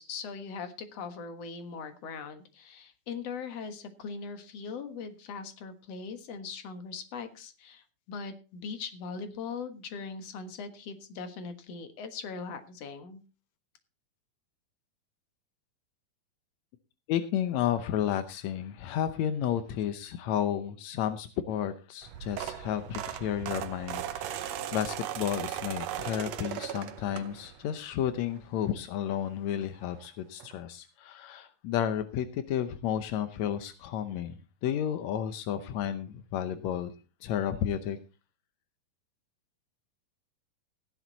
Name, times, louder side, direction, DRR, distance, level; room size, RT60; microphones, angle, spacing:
voice 1, 0.0-13.2, left 5 dB, 55° left, 8 dB, 2.2 m, -40 dB
voice 2, 17.1-34.4 34.6-36.9 37.2-38.0, left 10 dB, 75° left, 10 dB, 1.6 m, -32 dB
sound 1, 22.0-27.7 28.1-28.4 29.6-29.7 29.9-30.1 30.4-30.5, right 11 dB, 80° right, 1.5 m, -37 dB
15.0 x 11.0 x 4.0 m, 0.32 s
omnidirectional pair, 4.2 m